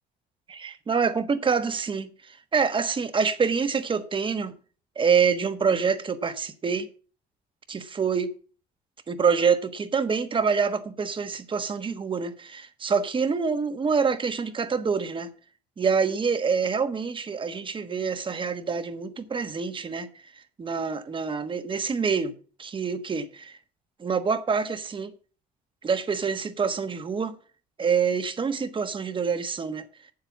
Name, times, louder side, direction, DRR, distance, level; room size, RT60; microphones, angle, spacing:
voice 1, 0.5-4.5 4.9-6.9 7.7-8.3 9.1-15.3 15.8-20.1 20.6-22.3 22.6-23.6 24.0-25.1 25.8-27.4 27.8-29.8, right 5 dB, 30° right, 1.3 m, -26 dB
8.8 x 7.7 x 7.2 m
cardioid pair, 110°, 17 cm